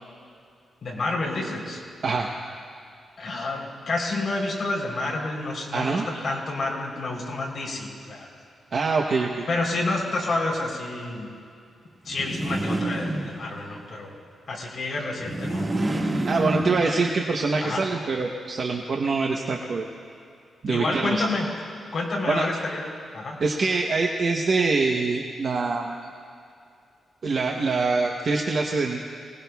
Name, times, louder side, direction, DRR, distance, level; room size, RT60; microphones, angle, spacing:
voice 1, 0.8-1.8 3.2-8.3 9.5-11.3 12.0-14.1 14.5-15.7 17.6-17.9 20.7-21.5 21.9-23.4, left 2 dB, 45° left, -3 dB, 3.5 m, -29 dB
voice 2, 5.7-6.1 8.7-9.4 16.3-19.9 20.6-21.2 22.3-22.5 23.4-26.0 27.2-29.0, right 4 dB, 45° right, 1 dB, 0.8 m, -24 dB
sound 1, 12.1-13.8 15.1-17.3, right 1 dB, 25° right, 1.7 m, -28 dB
24.5 x 19.0 x 2.3 m, 2.5 s
wide cardioid pair, 155°, 0 cm